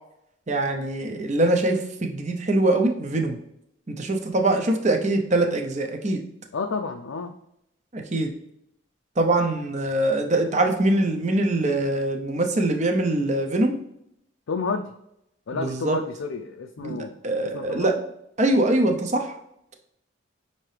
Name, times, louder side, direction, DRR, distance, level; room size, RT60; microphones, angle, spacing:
voice 1, 0.5-3.4 3.9-6.2 7.9-8.3 9.2-13.8 15.5-16.0 16.8-17.0 17.2-17.9 18.4-19.3, right 2 dB, 35° right, 3 dB, 0.7 m, -23 dB
voice 2, 6.5-7.3 14.5-14.8 15.5-17.2 17.4-18.0, left 4 dB, 85° left, 4 dB, 0.4 m, -30 dB
5.9 x 2.8 x 3.3 m, 0.77 s
head